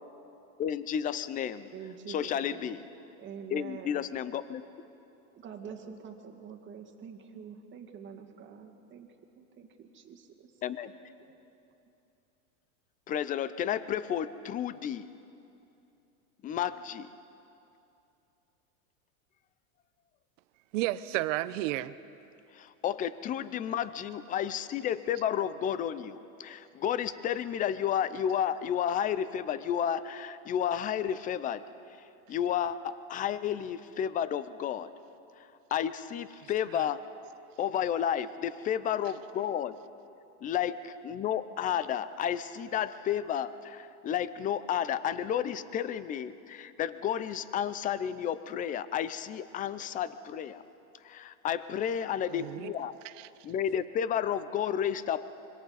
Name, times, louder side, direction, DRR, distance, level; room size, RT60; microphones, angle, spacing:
voice 1, 0.6-1.7 2.1-2.9 3.5-4.6 10.6-10.9 13.1-15.1 16.4-17.1 22.5-31.6 32.3-34.9 35.7-37.0 37.6-39.8 40.4-50.6 51.0-52.9 53.4-55.3, left 9 dB, 20° left, 14 dB, 0.5 m, -32 dB
voice 2, 1.7-2.7 3.2-4.0 5.3-9.1 9.4-10.6 10.9-11.4, right 7 dB, 25° right, 2 dB, 2.0 m, -46 dB
voice 3, 20.7-21.9 36.4-36.9 52.3-52.7 53.0-53.3, right 16 dB, 60° right, 15 dB, 0.8 m, -33 dB
26.5 x 24.5 x 4.1 m, 2.7 s
supercardioid pair, 135°, 43 cm